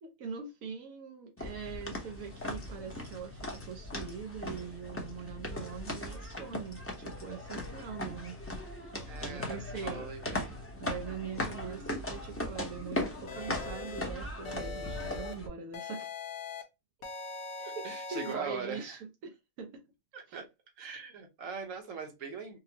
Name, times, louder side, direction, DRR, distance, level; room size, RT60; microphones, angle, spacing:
voice 1, 0.0-8.4 9.2-10.1 10.8-16.1 17.7-19.8 20.3-20.4, right 6 dB, 90° right, 1.1 m, -42 dB
sound 1, 1.4-15.5, left 1 dB, 15° left, 0.5 m, -39 dB
voice 2, 9.1-10.5 17.6-19.0 20.1-20.4 20.8-22.6, right 5 dB, 70° right, 1.3 m, -41 dB
sound 2, 13.3-14.0 14.4-15.3 15.7-16.6 17.0-18.3, left 4 dB, 60° left, 1.0 m, -41 dB
4.2 x 2.0 x 2.7 m
omnidirectional pair, 1.4 m